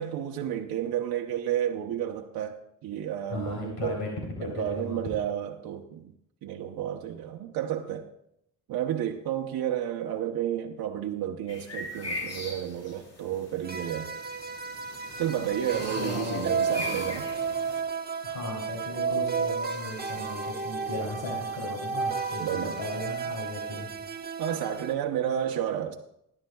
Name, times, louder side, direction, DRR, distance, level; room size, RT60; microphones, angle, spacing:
voice 1, 0.0-4.0 4.4-6.1 6.4-8.1 8.7-14.1 15.2-17.3 22.4-22.8 24.4-25.9, right 10 dB, 75° right, 2 dB, 0.9 m, -31 dB
voice 2, 3.3-5.0 16.0-16.5 18.2-23.9, left 2 dB, 85° left, -2 dB, 3.2 m, -36 dB
sound 1, 11.5-17.8, left 1 dB, 45° left, 3.5 m, -40 dB
sound 2, 13.6-24.9, right 5 dB, 25° right, 1.2 m, -33 dB
19.0 x 11.0 x 2.3 m, 0.77 s
cardioid pair, 90°, 36 cm